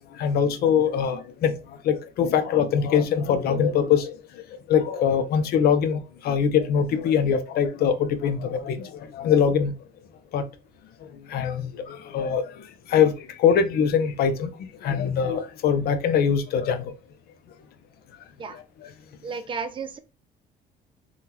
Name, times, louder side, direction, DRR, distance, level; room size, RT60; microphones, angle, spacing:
voice 1, 0.2-1.5 1.9-4.1 4.7-6.0 6.2-8.9 9.2-9.7 10.3-10.4 11.3-12.4 12.9-13.1 13.4-14.5 14.8-16.8, left 7 dB, 65° left, 0.6 m, -22 dB
voice 2, 19.2-20.0, right 5 dB, 30° right, 0.5 m, -33 dB
3.6 x 2.3 x 2.9 m
cardioid pair, 110°, 17 cm